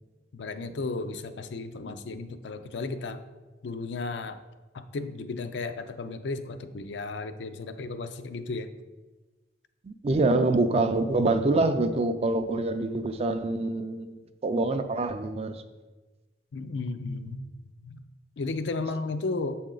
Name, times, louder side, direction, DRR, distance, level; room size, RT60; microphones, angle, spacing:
voice 1, 0.3-3.2 3.6-4.4 4.7-8.7 16.5-17.4 17.8-18.0 18.4-19.6, left 3 dB, 85° left, 9 dB, 0.5 m, -34 dB
voice 2, 9.8-15.6, right 2 dB, 35° right, 9 dB, 0.4 m, -26 dB
7.6 x 4.2 x 3.8 m, 1.2 s
head